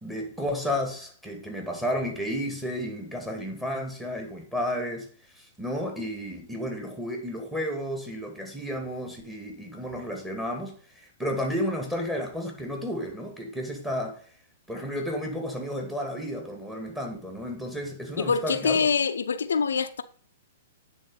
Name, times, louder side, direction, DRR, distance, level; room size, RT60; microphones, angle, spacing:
voice 1, 0.0-5.1 5.4-14.2 14.7-18.8, equal, 5° right, 2.2 m, -32 dB
voice 2, 18.2-20.0, left 5 dB, 85° left, 0.6 m, -25 dB
9.3 x 3.8 x 5.4 m
hypercardioid pair, 130°, 0 cm